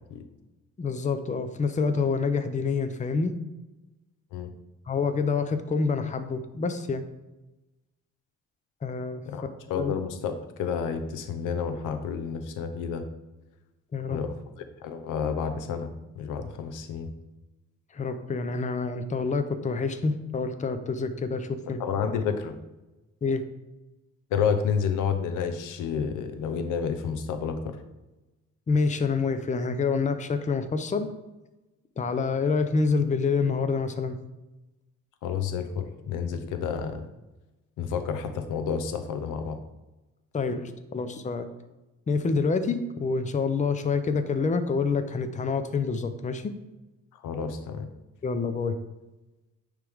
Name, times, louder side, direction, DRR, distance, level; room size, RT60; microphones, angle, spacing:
voice 1, 0.8-3.3 4.9-7.0 8.8-9.2 9.7-9.9 13.9-14.2 17.9-21.8 23.2-23.4 28.7-31.1 32.0-34.2 40.3-41.5 42.1-46.5 48.2-48.8, left 4 dB, 25° left, 9 dB, 0.6 m, -27 dB
voice 2, 9.3-13.0 14.1-14.3 14.8-17.1 21.8-22.6 24.3-27.8 35.2-37.1 37.8-39.6 47.2-47.9, left 6 dB, 90° left, 7 dB, 0.7 m, -30 dB
9.4 x 3.3 x 3.5 m, 1.0 s
cardioid pair, 90°, 30 cm